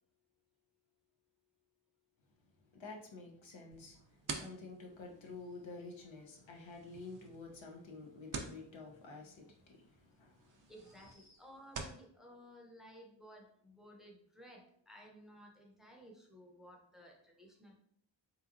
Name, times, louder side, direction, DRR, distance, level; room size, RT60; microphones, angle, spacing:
voice 1, 2.7-11.1, left 3 dB, 80° left, 0.8 m, -50 dB
sound 1, 3.7-12.0, right 4 dB, 45° right, 0.6 m, -50 dB
sound 2, 5.2-6.3 9.4-9.5 10.5-11.8, left 2 dB, 60° left, 1.2 m, -71 dB
voice 2, 10.7-17.7, equal, ahead, 0.7 m, -57 dB
3.7 x 3.0 x 2.5 m
wide cardioid pair, 90°, 45 cm